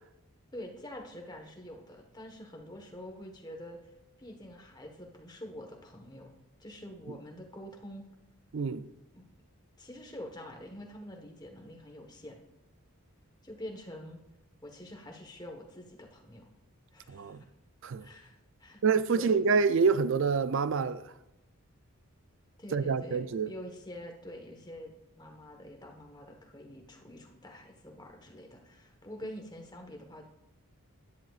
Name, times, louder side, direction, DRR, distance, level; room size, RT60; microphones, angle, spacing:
voice 1, 0.5-6.3 6.6-8.1 9.1-9.2 9.8-12.4 13.4-14.2 14.6-16.5 16.9-17.5 18.0-18.8 19.1-19.4 22.6-24.9 25.2-30.3, left 1 dB, 20° left, 1.2 m, -46 dB
voice 2, 8.5-8.8 17.1-17.4 17.8-18.1 18.8-21.0 22.7-23.5, right 5 dB, 55° right, 0.4 m, -27 dB
13.0 x 10.5 x 2.4 m
head